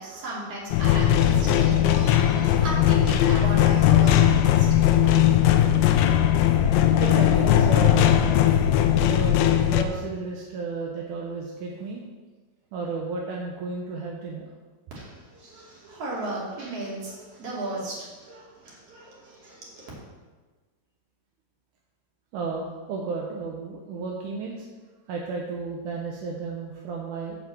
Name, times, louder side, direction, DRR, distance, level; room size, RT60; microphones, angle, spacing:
voice 1, 0.0-4.7 4.9-5.1 14.9-19.9, right 1 dB, 40° right, -5 dB, 3.4 m, -36 dB
sound 1, 0.7-9.8, left 10 dB, 80° left, 2.4 m, -19 dB
voice 2, 7.0-8.1 8.9-12.0 12.7-14.5 22.3-24.6 25.1-27.4, right 4 dB, 70° right, -1 dB, 2.0 m, -33 dB
7.2 x 6.5 x 7.6 m, 1.3 s
omnidirectional pair, 4.5 m